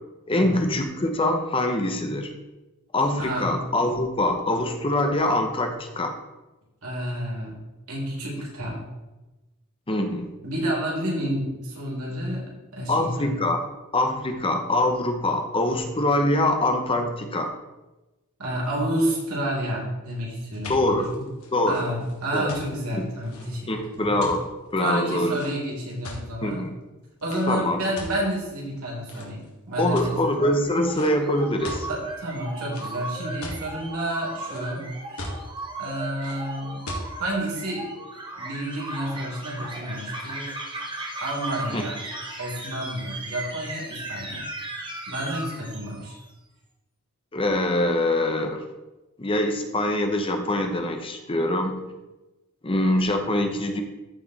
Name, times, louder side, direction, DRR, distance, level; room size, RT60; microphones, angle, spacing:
voice 1, 0.3-2.3 2.9-6.1 9.9-10.3 12.9-13.6 13.9-17.5 20.7-21.0 21.5-21.8 22.3-22.5 23.7-24.4 24.7-25.4 26.4-26.8 27.5-27.8 29.8-31.9 41.7-41.8 47.3-48.6 49.2-51.9 52.6-53.8, left 1 dB, 25° left, 5 dB, 0.9 m, -24 dB
voice 2, 3.2-3.5 6.8-7.5 7.9-8.8 10.4-13.3 18.4-21.3 21.7-23.7 24.0-24.2 24.8-26.6 27.2-30.2 31.9-34.9 35.8-36.8 37.2-37.9 38.3-40.6 41.2-42.0 42.4-44.5 45.1-46.2, right 1 dB, 80° right, -3 dB, 3.6 m, -30 dB
sound 1, 20.4-26.5 27.2-27.5 28.0-28.7 29.1-29.5 29.9-30.3 30.9-31.1 31.4-31.9 32.7-33.6 34.1-34.8 35.2-35.6 36.2-36.4 36.9-37.1, left 1 dB, 75° left, 2.2 m, -38 dB
sound 2, 29.7-46.2, right 2 dB, 20° right, 1.4 m, -37 dB
14.0 x 4.9 x 4.2 m, 1.1 s
head